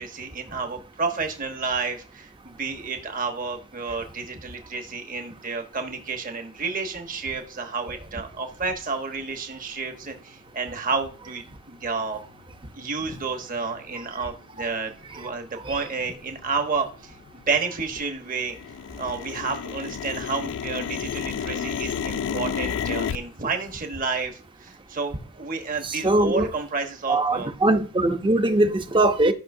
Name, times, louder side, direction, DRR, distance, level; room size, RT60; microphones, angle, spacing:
voice 1, 0.0-12.2 12.8-17.1 17.5-18.6 19.0-27.5, right 4 dB, 40° right, 1.2 m, -30 dB
sound 1, 12.3-12.4 13.0-13.2 13.8-14.1 14.5-14.6 14.9-15.4 15.7-18.0 18.3-23.2, left 7 dB, 55° left, 0.3 m, -31 dB
voice 2, 25.8-26.5 27.1-29.3, right 2 dB, 20° right, 0.7 m, -21 dB
12.5 x 5.7 x 2.7 m
head